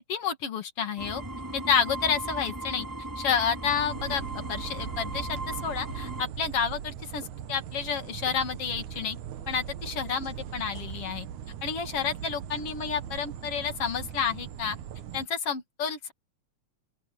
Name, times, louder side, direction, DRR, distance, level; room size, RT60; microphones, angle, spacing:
voice 1, 0.1-1.2 1.5-2.9 3.2-4.2 4.5-9.2 9.5-11.3 11.6-14.8 15.1-16.1, left 7 dB, 55° left, 2.9 m, -30 dB
sound 1, 1.0-6.2, right 2 dB, 5° right, 3.0 m, -37 dB
sound 2, 3.6-15.3, right 9 dB, 80° right, 2.6 m, -40 dB
open air
omnidirectional pair, 3.4 m